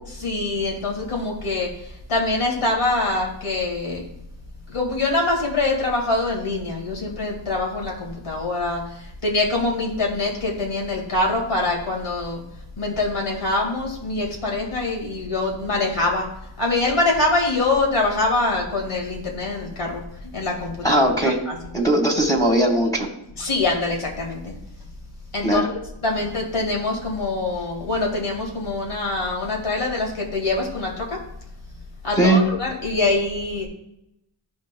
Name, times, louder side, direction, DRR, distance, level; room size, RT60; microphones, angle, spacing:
voice 1, 0.2-4.0 4.7-12.4 12.8-16.3 16.6-20.0 20.3-21.1 21.5-21.6 23.4-24.6 25.3-25.6 26.0-31.2 32.0-33.7, left 2 dB, 90° left, 0 dB, 1.9 m, -24 dB
voice 2, 20.8-21.4 21.7-23.1 25.4-25.6 32.2-32.4, right 1 dB, 5° left, 1 dB, 1.4 m, -18 dB
12.5 x 5.2 x 2.2 m, 0.83 s
wide cardioid pair, 50°, 49 cm